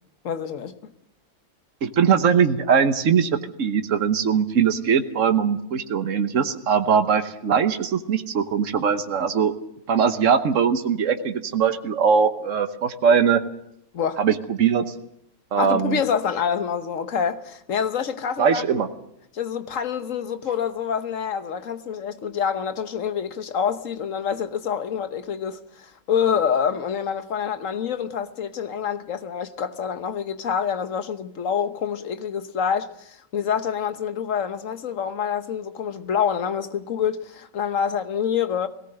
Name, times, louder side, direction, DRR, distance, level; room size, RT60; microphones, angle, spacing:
voice 1, 0.2-0.9 13.9-14.2 15.6-18.6 19.3-38.7, left 7 dB, 85° left, 1.5 m, -26 dB
voice 2, 1.8-3.3 3.6-9.5 9.9-13.4 14.2-14.9 15.5-16.0 18.4-18.9, right 7 dB, 80° right, 1.4 m, -21 dB
19.5 x 18.0 x 7.8 m
omnidirectional pair, 1.3 m